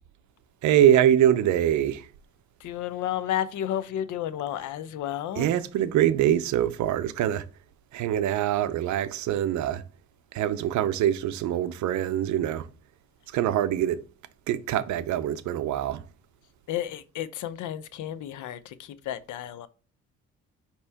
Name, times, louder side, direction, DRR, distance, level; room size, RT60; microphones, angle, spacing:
voice 1, 0.6-2.1 5.4-7.5 7.9-9.8 10.3-12.7 13.3-14.0 14.5-16.0, right 11 dB, 70° right, 0.5 m, -24 dB
voice 2, 2.6-5.5 16.7-19.7, left 11 dB, 75° left, 0.5 m, -32 dB
5.3 x 2.9 x 3.4 m
cardioid pair, 90°, 30 cm